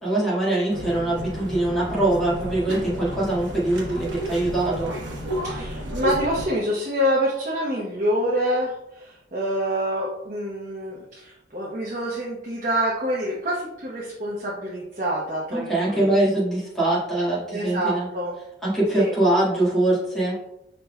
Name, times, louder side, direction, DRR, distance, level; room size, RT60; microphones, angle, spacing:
voice 1, 0.0-4.9 15.5-18.1 18.6-20.3, right 1 dB, 5° left, -9 dB, 1.7 m, -23 dB
sound 1, 0.7-6.5, right 1 dB, 90° right, 0.9 m, -32 dB
voice 2, 5.4-16.1 17.5-18.3 19.0-19.1, equal, 40° right, -6 dB, 0.9 m, -26 dB
5.7 x 3.9 x 2.2 m, 0.84 s
head